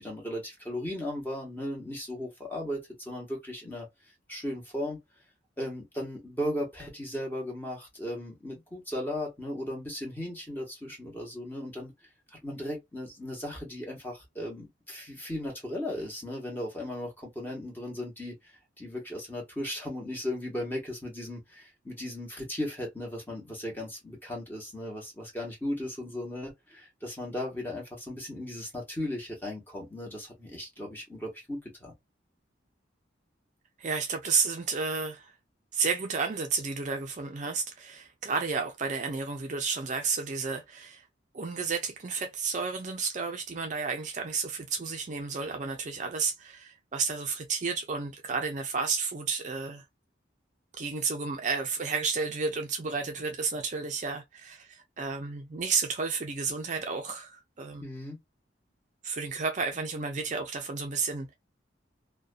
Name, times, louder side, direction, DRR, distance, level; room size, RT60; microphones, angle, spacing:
voice 1, 0.0-3.9 4.3-5.0 5.6-11.9 12.3-18.5 18.8-31.9 57.8-58.2, left 1 dB, 10° left, 1.1 m, -36 dB
voice 2, 33.8-35.3 35.7-41.0 41.3-49.8 50.8-57.8 59.0-61.3, right 5 dB, 40° right, 0.4 m, -32 dB
2.5 x 2.2 x 2.3 m
head